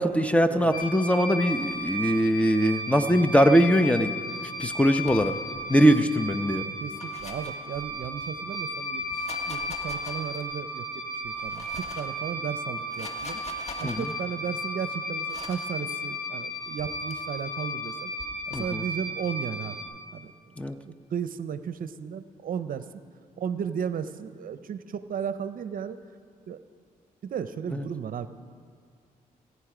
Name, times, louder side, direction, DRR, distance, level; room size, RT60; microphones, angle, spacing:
voice 1, 0.0-4.2 4.6-5.4 5.7-6.6 13.8-14.1 18.5-18.8 20.6-20.8 27.7-27.8, equal, 10° left, 10 dB, 0.7 m, -22 dB
sound 1, 0.7-19.8, equal, 70° left, 3.0 m, -34 dB
sound 2, 5.0-5.7 6.7-8.3 9.0-10.6 11.2-12.2 12.7-14.2 15.3-15.7 16.8-17.1 18.2-18.8, left 2 dB, 45° left, 1.6 m, -44 dB
voice 2, 5.8-6.1 6.6-13.4 13.8-18.1 18.5-19.8 20.1-20.5 20.9-22.9 23.4-26.0 26.5-26.6 27.2-28.3, right 7 dB, 65° right, 12 dB, 0.6 m, -35 dB
18.0 x 9.5 x 5.0 m, 2.1 s
cardioid pair, 70°, 15 cm